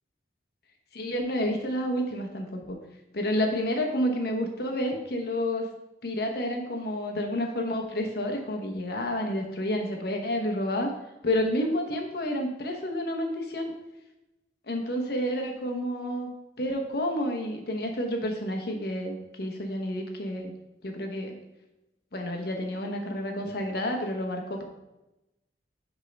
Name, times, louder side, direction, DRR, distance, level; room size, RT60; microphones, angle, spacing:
voice 1, 0.9-2.8 3.1-5.7 6.0-10.9 11.2-13.7 14.7-16.3 16.6-20.5 20.8-21.3 22.1-24.6, equal, 60° left, 2 dB, 1.0 m, -30 dB
6.6 x 3.7 x 5.2 m, 0.95 s
head